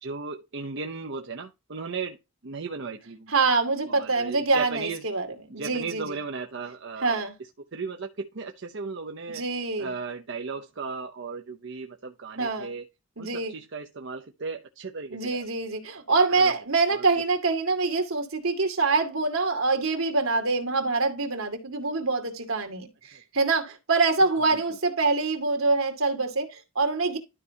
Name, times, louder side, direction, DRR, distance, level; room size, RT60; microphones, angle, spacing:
voice 1, 0.0-2.2 2.4-3.3 3.9-5.1 5.5-7.2 7.7-9.4 9.8-12.9 13.2-15.4 16.1-16.5 16.9-17.0 23.1-23.2 24.2-24.6, right 4 dB, 60° right, 0.8 m, -36 dB
voice 2, 3.3-5.3 5.5-6.2 7.0-7.3 9.3-9.9 12.4-12.7 13.2-13.6 15.1-27.2, right 3 dB, 80° right, 2.3 m, -25 dB
12.5 x 4.6 x 2.8 m
head